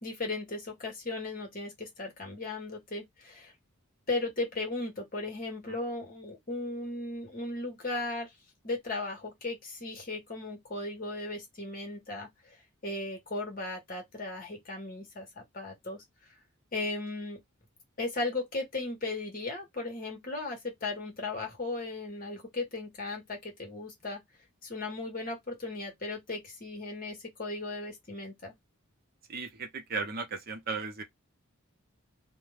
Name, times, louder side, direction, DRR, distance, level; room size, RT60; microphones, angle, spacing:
voice 1, 0.0-3.5 4.1-8.3 8.6-12.6 12.8-16.0 16.7-17.4 18.0-24.2 24.6-28.5, left 2 dB, 40° left, 1.1 m, -36 dB
voice 2, 29.3-31.0, right 4 dB, 45° right, 0.6 m, -36 dB
2.4 x 2.2 x 3.2 m
head